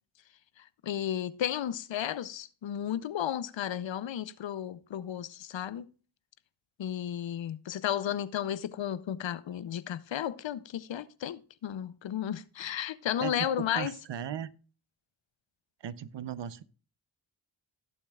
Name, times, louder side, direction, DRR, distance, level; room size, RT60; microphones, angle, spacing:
voice 1, 0.6-5.9 6.8-13.9, left 10 dB, 75° left, 0.7 m, -33 dB
voice 2, 13.7-14.5 15.8-16.6, right 9 dB, 65° right, 0.8 m, -37 dB
17.0 x 7.2 x 2.4 m
cardioid pair, 50°, 46 cm